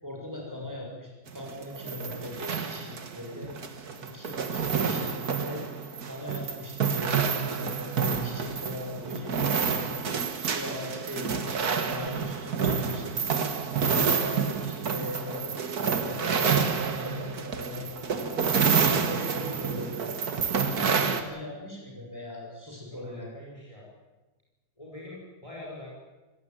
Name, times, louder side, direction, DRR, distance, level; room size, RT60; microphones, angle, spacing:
voice 1, 0.0-5.7 6.0-20.2 20.5-23.3, left 2 dB, 10° right, -2 dB, 6.9 m, -40 dB
sound 1, 1.3-21.2, right 6 dB, 50° right, 2.1 m, -28 dB
voice 2, 22.9-23.9 24.8-26.0, left 2 dB, 15° left, -3 dB, 5.1 m, -44 dB
26.0 x 16.0 x 9.3 m, 1.2 s
omnidirectional pair, 2.2 m